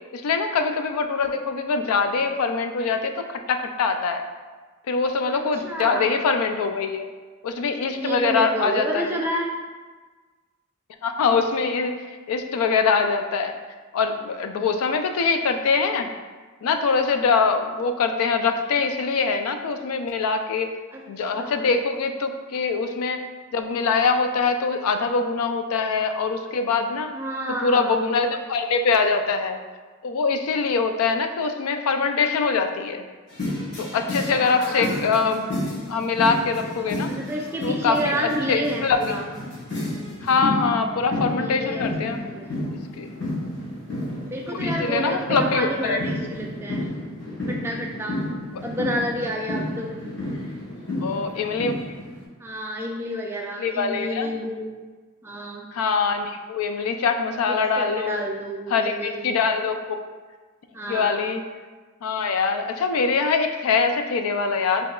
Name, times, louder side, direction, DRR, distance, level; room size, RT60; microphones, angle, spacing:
voice 1, 0.1-4.2 4.9-7.1 7.4-9.1 11.0-13.5 13.9-16.1 16.6-20.7 21.1-23.2 23.5-27.1 27.6-29.6 30.0-33.0 33.8-35.5 35.9-37.1 37.6-39.2 40.2-42.2 43.0-43.1 44.5-46.0 51.0-51.7 53.6-54.3 55.7-58.2 58.7-60.0 60.9-61.4 62.0-64.9, left 4 dB, 85° left, 7 dB, 0.4 m, -23 dB
voice 2, 5.6-6.2 8.0-9.5 20.9-21.0 21.3-21.7 27.1-28.1 33.9-35.2 37.1-39.3 41.4-42.6 44.3-46.9 47.5-48.2 48.6-49.9 52.4-54.8 55.2-55.6 57.4-59.3 60.7-61.3, equal, 10° right, -1 dB, 0.3 m, -30 dB
sound 1, 33.3-52.2, left 1 dB, 55° left, 1.1 m, -31 dB
5.3 x 2.8 x 2.2 m, 1.4 s
head